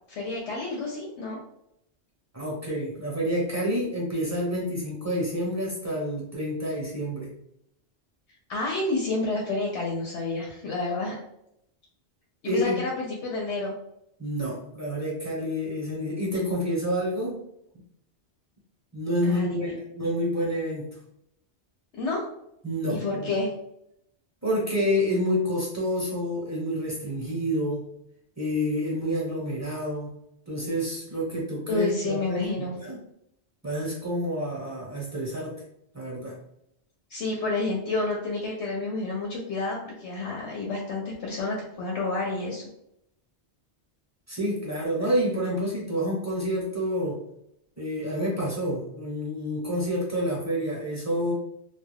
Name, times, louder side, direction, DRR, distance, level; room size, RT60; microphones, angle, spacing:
voice 1, 0.1-1.4 8.5-11.1 12.4-13.7 19.2-19.7 22.0-22.2 22.9-23.5 31.7-32.7 37.1-42.7, left 3 dB, 80° left, -2 dB, 0.9 m, -29 dB
voice 2, 2.3-7.3 12.4-12.8 14.2-17.4 18.9-20.9 22.6-23.3 24.4-27.9 28.4-30.2 30.5-33.0 33.6-35.6 35.9-36.4 44.3-47.2 47.8-51.3, equal, 15° right, -5 dB, 0.7 m, -28 dB
2.3 x 2.2 x 3.3 m, 0.76 s
omnidirectional pair, 1.2 m